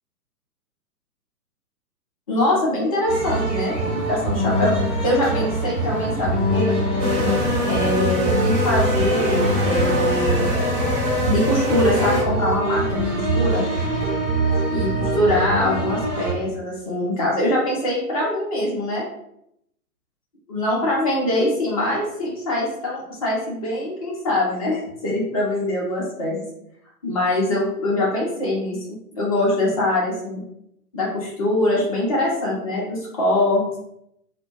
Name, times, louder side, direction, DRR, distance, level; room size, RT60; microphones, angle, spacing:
voice 1, 2.3-4.7 5.0-6.8 7.7-10.5 11.3-13.0 13.3-13.6 14.7-19.0 20.5-26.4 27.0-28.8 29.2-30.4 30.9-33.8, left 1 dB, 25° left, -4 dB, 0.6 m, -23 dB
sound 1, 3.1-16.3, right 1 dB, 45° right, 1.0 m, -24 dB
sound 2, 7.0-12.2, left 1 dB, 25° right, 1.0 m, -24 dB
2.4 x 2.1 x 2.9 m, 0.77 s
figure-of-eight pair, 125°, 48 cm